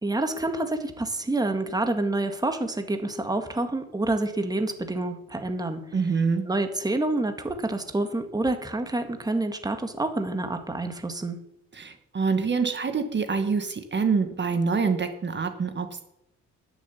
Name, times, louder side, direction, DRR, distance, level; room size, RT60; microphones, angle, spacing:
voice 1, 0.0-5.8 6.5-11.4, right 2 dB, 15° right, 7 dB, 1.9 m, -28 dB
voice 2, 5.9-6.4 11.7-16.0, right 5 dB, 35° right, 7 dB, 1.6 m, -26 dB
13.0 x 7.0 x 9.9 m, 0.81 s
cardioid pair, 90°, 30 cm